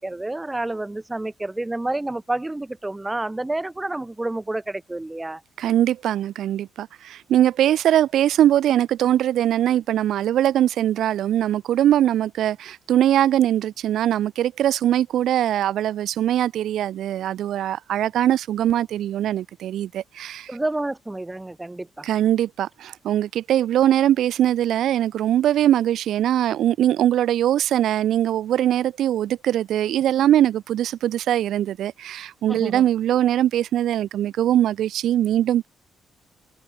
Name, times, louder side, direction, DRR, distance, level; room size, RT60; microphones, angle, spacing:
voice 1, 0.0-5.4 20.5-22.1 32.5-32.9, right 2 dB, 15° right, 0.9 m, -29 dB
voice 2, 5.6-20.5 22.0-35.7, right 11 dB, 75° right, 0.9 m, -21 dB
cardioid pair, 90°, 0 cm